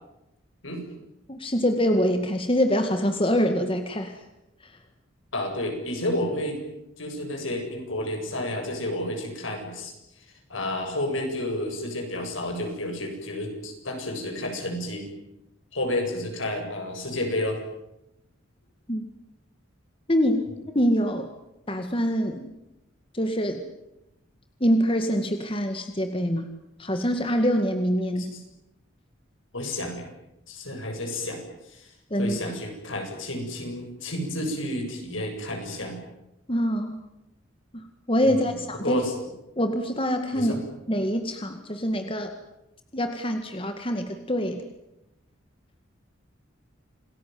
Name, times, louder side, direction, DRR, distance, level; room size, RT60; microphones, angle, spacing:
voice 1, 1.3-4.2 4.6-4.7 18.9-19.0 20.1-20.5 20.7-21.3 21.7-22.5 23.1-23.7 24.6-26.5 26.8-28.3 32.1-32.4 36.5-37.0 38.1-39.0 39.6-40.5 40.9-42.3 42.9-44.6, equal, 25° left, 6 dB, 2.0 m, -25 dB
voice 2, 5.3-6.6 7.0-9.9 10.5-15.1 15.7-17.6 28.2-28.4 29.5-30.1 30.5-31.4 31.7-31.9 32.2-36.0 38.2-38.4 38.8-39.1 40.3-40.6, left 1 dB, 75° left, 3 dB, 7.7 m, -30 dB
28.5 x 20.0 x 9.5 m, 0.88 s
head